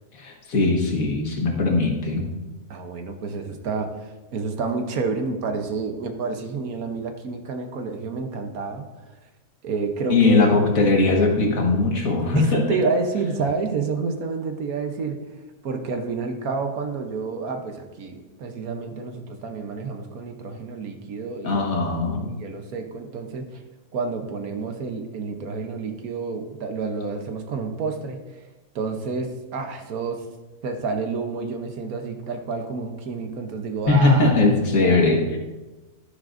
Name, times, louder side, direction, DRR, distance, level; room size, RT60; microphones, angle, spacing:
voice 1, 0.1-2.3 10.1-12.6 21.4-22.3 33.9-35.4, left 3 dB, 60° left, 0 dB, 1.8 m, -20 dB
voice 2, 2.7-8.8 9.6-10.5 12.3-15.2 15.6-21.6 22.2-23.6 23.9-28.2 28.7-30.3 30.6-34.3 34.8-35.0, right 4 dB, 65° right, 5 dB, 1.3 m, -29 dB
12.0 x 9.8 x 2.6 m, 1.1 s
omnidirectional pair, 1.7 m